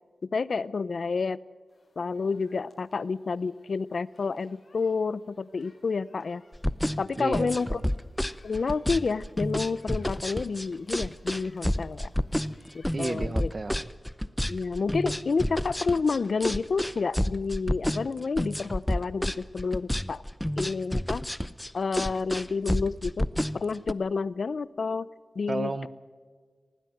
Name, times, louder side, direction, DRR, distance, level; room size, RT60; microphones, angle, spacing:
voice 1, 0.3-1.4 2.0-6.4 7.0-7.8 8.4-12.1 12.7-13.5 14.5-20.2 20.6-21.2 21.7-23.2 23.5-25.1 25.4-25.9, left 4 dB, 65° left, 18 dB, 0.6 m, -29 dB
sound 1, 1.7-13.8, left 2 dB, 50° left, 5.3 m, -63 dB
sound 2, 6.5-23.9, equal, 5° left, 0.6 m, -29 dB
voice 2, 7.2-7.8 12.9-13.9 25.5-25.9, right 3 dB, 40° right, 14 dB, 1.1 m, -32 dB
20.5 x 16.5 x 7.8 m, 1.5 s
wide cardioid pair, 90°, 0 cm